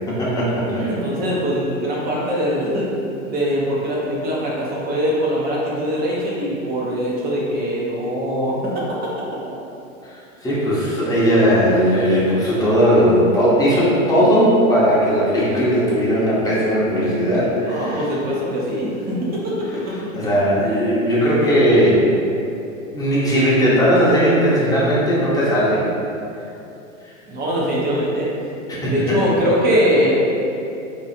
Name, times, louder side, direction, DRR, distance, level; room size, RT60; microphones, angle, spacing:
voice 1, 0.1-0.8 10.0-18.1 19.7-19.8 20.1-22.0 22.9-25.8 28.7-29.2, equal, 10° left, -8 dB, 0.8 m, -17 dB
voice 2, 0.8-2.9 3.3-8.8 17.7-20.0 27.3-28.3 28.8-30.1, equal, 25° right, -5 dB, 0.7 m, -22 dB
2.8 x 2.3 x 4.2 m, 2.8 s
hypercardioid pair, 110°, 41 cm